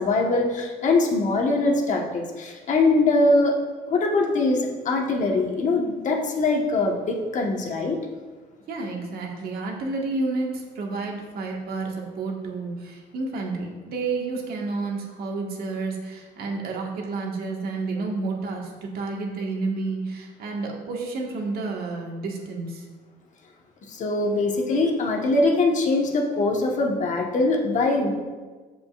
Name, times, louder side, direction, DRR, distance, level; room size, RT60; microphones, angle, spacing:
voice 1, 0.0-3.5 3.9-8.0 23.9-28.2, left 2 dB, 45° left, 1 dB, 1.3 m, -22 dB
voice 2, 8.7-22.9, right 3 dB, 65° right, 0 dB, 1.6 m, -30 dB
14.0 x 5.2 x 2.4 m, 1.4 s
cardioid pair, 110°, 17 cm